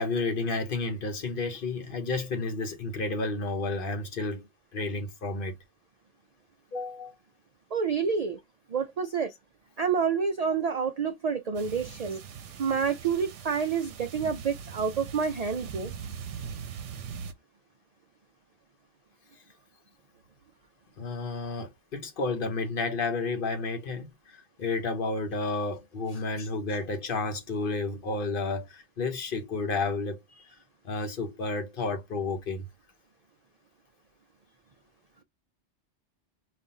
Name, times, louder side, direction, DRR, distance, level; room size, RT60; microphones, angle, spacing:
voice 1, 0.0-4.5 4.7-5.5 6.7-7.1 21.0-24.1 24.6-30.2 30.8-32.7, left 3 dB, 55° left, 0.9 m, -31 dB
voice 2, 7.7-8.4 8.7-9.3 9.8-12.2 12.6-15.9, right 6 dB, 60° right, 0.4 m, -28 dB
sound 1, 11.5-17.3, right 7 dB, 90° right, 1.0 m, -41 dB
5.3 x 2.4 x 2.6 m
omnidirectional pair, 1.2 m